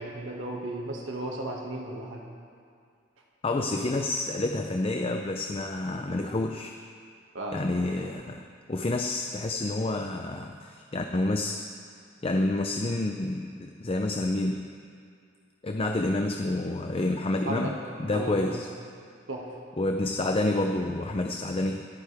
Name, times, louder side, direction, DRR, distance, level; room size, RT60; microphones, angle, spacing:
voice 1, 0.0-2.2 7.3-7.6 8.0-8.1 17.5-17.8 18.1-18.6 19.3-19.5, right 1 dB, 85° right, -1 dB, 2.0 m, -35 dB
voice 2, 3.4-6.7 7.5-11.6 12.2-14.7 15.6-18.7 19.8-21.9, left 2 dB, 30° left, 4 dB, 0.6 m, -29 dB
26.5 x 9.3 x 3.5 m, 2.3 s
head